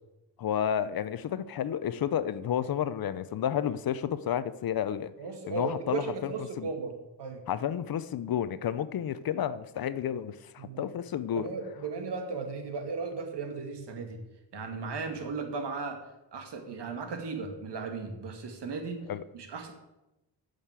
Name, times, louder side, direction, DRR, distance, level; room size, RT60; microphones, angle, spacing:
voice 1, 0.4-5.1 5.5-6.3 6.6-6.7 7.5-11.5 19.1-19.2, left 9 dB, 50° left, 14 dB, 0.7 m, -31 dB
voice 2, 5.2-7.4 10.6-10.9 11.3-14.2 14.5-16.0 16.3-19.0 19.3-19.7, right 4 dB, 65° right, 4 dB, 2.3 m, -36 dB
9.3 x 6.6 x 8.2 m, 0.96 s
cardioid pair, 110°, 45 cm